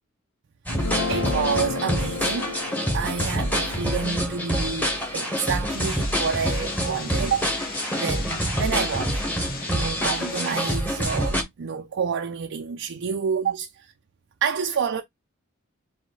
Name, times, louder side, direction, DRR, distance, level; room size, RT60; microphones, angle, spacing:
Guitar, 0.7-7.0, left 5 dB, 80° left, 0.7 m, -35 dB
sound 1, 0.7-11.4, equal, 10° left, 1.2 m, -26 dB
voice 1, 1.1-2.6 2.9-9.2 9.7-13.9 14.4-15.0, right 6 dB, 60° right, 0.4 m, -29 dB
sound 2, 5.7-10.8, left 5 dB, 45° left, 1.0 m, -37 dB
4.7 x 2.2 x 3.9 m
head